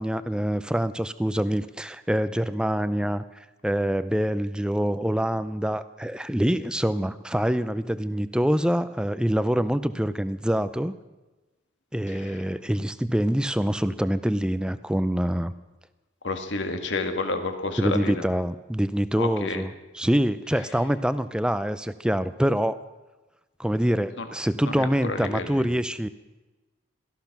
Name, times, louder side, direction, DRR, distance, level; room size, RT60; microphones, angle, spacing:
voice 1, 0.0-10.9 11.9-15.5 17.8-19.7 20.0-22.8 23.6-26.1, equal, 5° right, 13 dB, 0.5 m, -25 dB
voice 2, 12.1-12.4 16.2-18.3 19.2-19.6 24.2-24.3 24.8-25.7, left 3 dB, 65° left, 6 dB, 1.8 m, -30 dB
17.5 x 14.0 x 6.0 m, 1.1 s
head